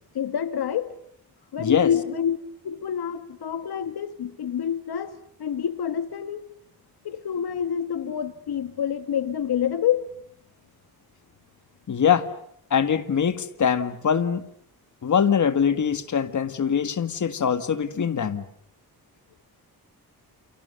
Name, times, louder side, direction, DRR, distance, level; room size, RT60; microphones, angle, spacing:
voice 1, 0.1-1.0 1.5-2.4 2.6-6.4 7.0-10.1, left 9 dB, 75° left, 1.3 m, -27 dB
voice 2, 1.6-1.9 11.9-12.3 12.7-14.5 15.0-18.5, left 7 dB, 50° left, 1.8 m, -23 dB
29.0 x 28.5 x 6.8 m
wide cardioid pair, 150°, 39 cm